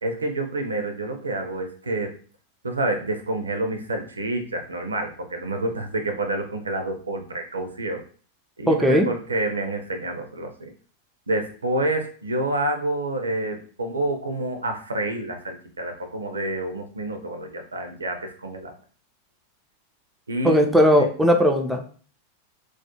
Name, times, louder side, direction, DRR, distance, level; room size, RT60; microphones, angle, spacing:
voice 1, 0.0-2.1 2.6-8.0 8.6-10.7 11.3-18.7 20.3-20.7 21.0-21.1, right 2 dB, 75° right, 6 dB, 0.4 m, -28 dB
voice 2, 8.7-9.1 20.4-21.9, equal, 5° right, 2 dB, 0.4 m, -18 dB
2.3 x 2.1 x 2.8 m, 0.42 s
figure-of-eight pair, 90°, 0 cm